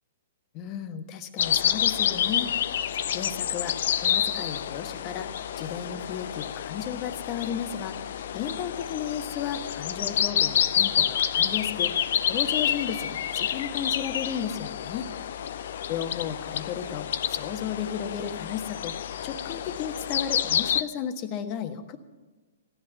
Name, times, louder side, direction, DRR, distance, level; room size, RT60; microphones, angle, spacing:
voice 1, 0.5-2.5 3.1-15.1 15.9-19.0 19.2-22.0, left 8 dB, 35° left, 8 dB, 1.3 m, -34 dB
sound 1, 1.4-20.8, left 9 dB, 60° left, 0.5 m, -28 dB
15.0 x 11.0 x 6.7 m, 1.3 s
figure-of-eight pair, 120°, 0 cm